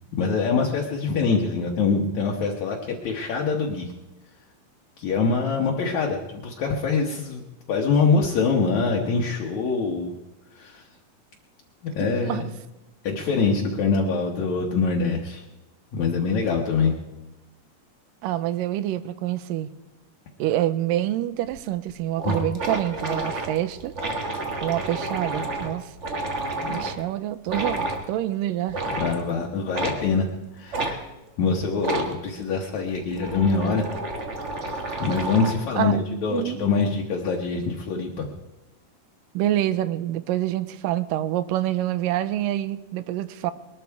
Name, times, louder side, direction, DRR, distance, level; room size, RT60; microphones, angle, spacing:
voice 1, 0.1-3.9 5.0-7.4 7.7-10.1 10.6-10.8 11.8-12.5 13.0-15.4 15.9-16.9 22.2-22.4 26.6-26.8 29.0-30.3 30.5-31.0 31.4-33.9 35.0-38.3, left 4 dB, 65° left, -1 dB, 2.3 m, -24 dB
voice 2, 12.0-12.4 18.2-19.7 20.4-23.9 24.6-25.9 26.6-28.8 35.8-36.0 36.3-36.6 39.3-43.5, right 13 dB, 80° right, 14 dB, 2.3 m, -27 dB
sound 1, 21.5-21.6 21.9-22.0 22.2-27.0 27.5-28.0 28.7-29.2 29.7-30.0 30.7-30.9 31.8-32.1 32.9-35.7, right 2 dB, 55° right, 0.7 m, -30 dB
21.0 x 12.5 x 4.7 m, 1.0 s
omnidirectional pair, 4.0 m